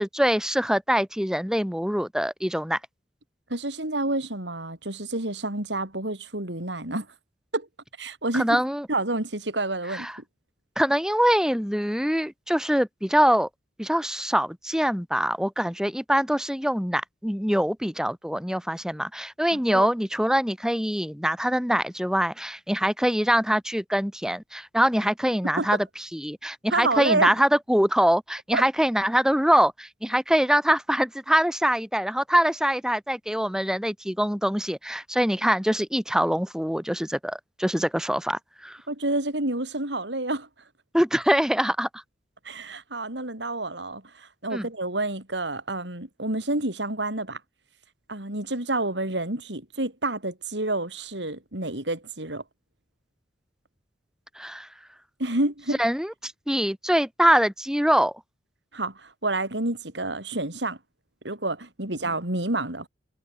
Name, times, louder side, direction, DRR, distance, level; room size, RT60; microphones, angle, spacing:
voice 1, 0.0-2.8 8.3-8.9 9.9-10.2 10.8-13.5 13.8-25.9 26.1-38.8 40.9-42.0 44.5-44.7 54.4-54.7 55.8-58.1, equal, 5° right, 7.8 m, -24 dB
voice 2, 3.5-7.1 7.5-7.7 8.0-8.6 8.9-10.1 19.5-19.9 25.4-25.7 26.7-27.3 28.5-28.6 38.9-40.5 42.4-47.4 48.1-52.4 55.2-55.8 58.7-60.8 61.2-62.9, right 2 dB, 80° right, 5.7 m, -29 dB
head